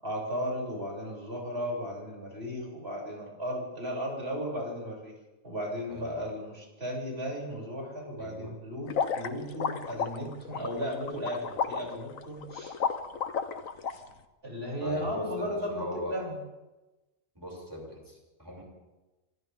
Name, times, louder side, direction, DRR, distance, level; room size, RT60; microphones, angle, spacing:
voice 1, 0.0-5.1 5.4-12.8 14.4-16.4, equal, 45° right, -3 dB, 8.1 m, -35 dB
voice 2, 8.2-8.5 14.8-16.1 17.4-18.6, left 1 dB, 15° right, -2 dB, 7.3 m, -39 dB
sound 1, 8.9-13.9, left 6 dB, 80° left, 1.5 m, -32 dB
28.5 x 26.0 x 3.8 m, 1.1 s
omnidirectional pair, 1.4 m